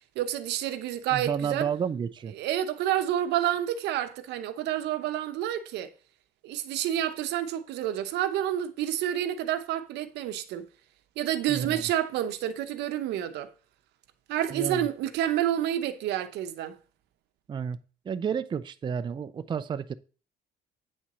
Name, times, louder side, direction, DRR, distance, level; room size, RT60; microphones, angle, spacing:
voice 1, 0.2-1.7 2.4-5.9 6.4-10.7 11.2-13.5 14.3-16.8, right 11 dB, 85° right, 0.9 m, -29 dB
voice 2, 1.1-2.3 11.5-11.8 14.5-14.9 17.5-17.8 18.1-19.9, right 7 dB, 30° right, 0.4 m, -31 dB
8.7 x 4.2 x 6.1 m
cardioid pair, 110°, 17 cm